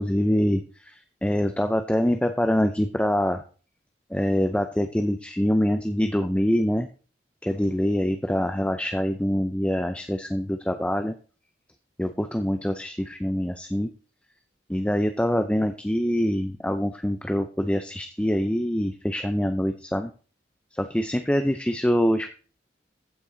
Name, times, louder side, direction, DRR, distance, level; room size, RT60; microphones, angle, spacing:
voice 1, 0.0-3.4 4.1-6.9 7.4-11.1 12.0-13.9 14.7-20.1 20.7-22.3, equal, 5° left, 7 dB, 0.5 m, -25 dB
14.5 x 6.0 x 3.9 m, 0.38 s
head